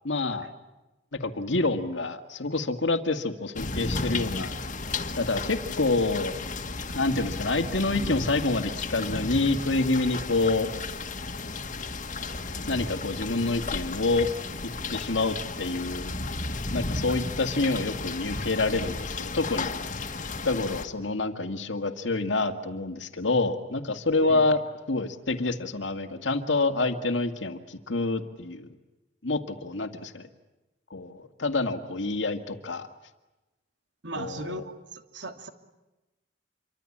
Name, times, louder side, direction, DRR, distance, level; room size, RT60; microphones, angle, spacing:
voice 1, 0.0-0.5 1.1-4.5 5.2-6.4 6.9-10.7 12.7-14.3 14.6-16.1 16.7-19.8 20.4-24.6 24.9-28.7 29.2-30.3 30.9-32.9 34.2-34.5, left 3 dB, 90° left, 7 dB, 2.0 m, -27 dB
sound 1, 3.6-20.9, left 3 dB, 45° left, 1.7 m, -33 dB
voice 2, 34.0-35.5, right 2 dB, 75° right, 6 dB, 2.6 m, -38 dB
27.5 x 24.5 x 8.7 m, 1.0 s
head